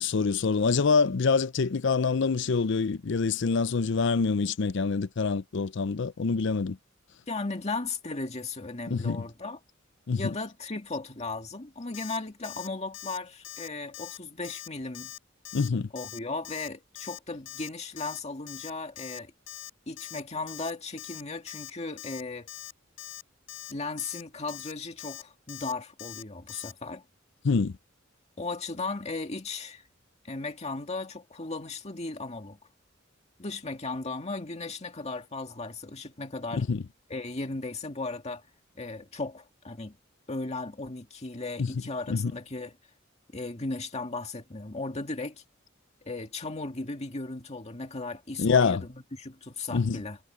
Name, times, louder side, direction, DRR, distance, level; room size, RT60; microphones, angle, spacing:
voice 1, 0.0-6.8 8.9-9.2 10.1-10.2 15.5-15.9 27.4-27.7 36.5-36.8 41.6-41.7 42.1-42.3 48.4-48.8 49.7-50.0, left 5 dB, 65° left, 0.5 m, -25 dB
voice 2, 7.3-9.6 10.2-15.1 15.9-19.3 19.9-22.5 23.7-27.0 28.4-29.8 30.2-32.6 33.4-36.7 37.1-38.5 38.8-40.0 40.3-42.8 43.3-45.4 46.0-50.2, left 3 dB, 35° left, 2.0 m, -36 dB
Alarm, 11.9-12.2 12.4-12.7 12.9-13.2 13.4-13.7 13.9-14.2 14.4-14.7 14.9-15.2 15.4-15.7 16.0-16.2 16.4-16.7 16.9-17.2 17.5-17.7 18.0-18.2 18.5-18.7 19.0-19.2 19.5-19.7 20.0-20.2 20.5-20.7 21.0-21.2 21.5-21.7 22.0-22.2 22.5-22.7 23.0-23.2 23.5-23.7 24.0-24.2 24.5-24.7 25.0-25.2 25.5-25.7 26.0-26.2 26.5-26.7, left 13 dB, 85° left, 4.8 m, -42 dB
head